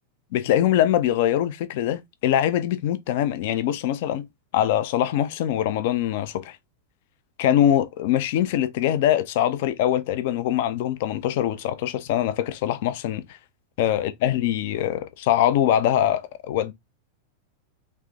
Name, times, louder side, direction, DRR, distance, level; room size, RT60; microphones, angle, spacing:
voice 1, 0.3-4.3 4.5-6.6 7.4-13.4 13.8-16.7, left 11 dB, 50° left, 0.5 m, -23 dB
3.4 x 3.2 x 3.8 m
figure-of-eight pair, 90°, 0 cm